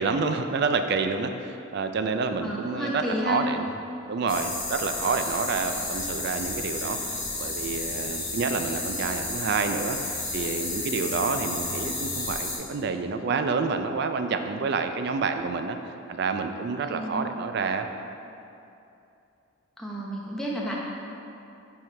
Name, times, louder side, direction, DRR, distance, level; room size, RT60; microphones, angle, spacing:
voice 1, 0.0-3.7 4.1-10.0 10.3-15.8 16.1-17.9, right 4 dB, 50° right, 7 dB, 0.4 m, -28 dB
voice 2, 2.4-3.4 16.8-17.4 19.8-20.8, equal, 5° left, -5 dB, 0.8 m, -31 dB
sound 1, 4.3-12.6, left 2 dB, 20° left, 1.6 m, -32 dB
7.6 x 5.5 x 3.3 m, 2.7 s
head